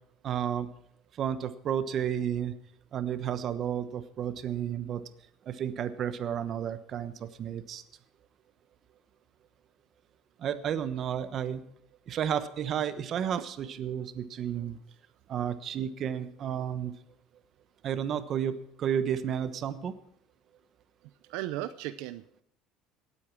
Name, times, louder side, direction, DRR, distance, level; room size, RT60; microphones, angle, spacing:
voice 1, 0.2-0.7 1.2-2.6 2.9-5.0 5.5-7.8 10.4-11.6 12.1-14.8 15.3-16.9 17.8-19.9, right 9 dB, 45° right, 12 dB, 1.1 m, -32 dB
voice 2, 21.3-22.4, right 15 dB, 80° right, 12 dB, 0.6 m, -36 dB
18.0 x 8.5 x 6.1 m, 0.71 s
cardioid pair, 120°, 0 cm